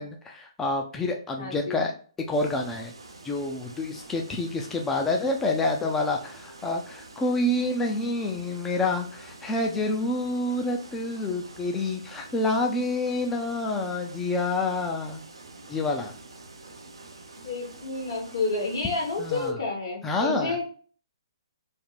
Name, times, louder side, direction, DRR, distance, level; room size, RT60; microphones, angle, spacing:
voice 1, 0.0-1.9 2.3-2.9 3.2-15.2 15.7-16.1 19.2-19.6 20.0-20.6, left 2 dB, 10° left, 2 dB, 0.5 m, -28 dB
voice 2, 1.4-1.8 17.4-20.6, left 3 dB, 65° left, 0 dB, 1.6 m, -30 dB
sound 1, 2.3-19.5, right 3 dB, 85° right, 0.7 m, -47 dB
3.4 x 2.1 x 3.9 m, 0.42 s
hypercardioid pair, 135°, 3 cm